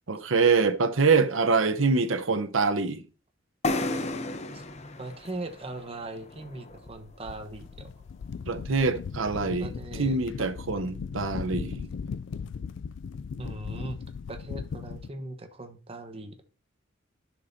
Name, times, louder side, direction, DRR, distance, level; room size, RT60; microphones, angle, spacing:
voice 1, 0.1-3.0 8.5-9.7 10.0-11.9, right 4 dB, 90° right, 0.9 m, -25 dB
sound 1, 3.6-7.3, left 2 dB, 35° left, 0.7 m, -33 dB
voice 2, 5.0-7.9 9.6-10.2 13.4-14.0 14.3-16.4, right 2 dB, 30° right, 1.0 m, -39 dB
sound 2, 7.2-15.1, left 6 dB, 65° left, 0.3 m, -38 dB
11.5 x 6.3 x 2.7 m
head